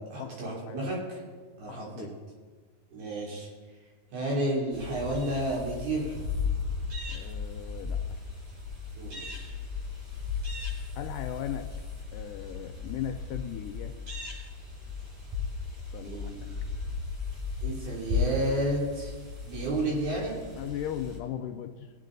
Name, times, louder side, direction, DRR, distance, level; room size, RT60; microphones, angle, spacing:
voice 1, 0.1-1.2 1.6-2.1 2.9-3.5 4.1-6.2 9.0-9.5 16.0-16.5 17.6-19.1 19.4-20.5, right 1 dB, 90° right, -4 dB, 5.0 m, -31 dB
voice 2, 1.7-2.1 7.1-8.2 11.0-11.7 12.1-13.9 15.9-16.3 20.6-21.9, left 10 dB, 80° left, 6 dB, 2.0 m, -37 dB
sound 1, 4.7-21.2, left 5 dB, 55° right, 5.2 m, -36 dB
21.0 x 8.2 x 4.0 m, 1.5 s
omnidirectional pair, 4.1 m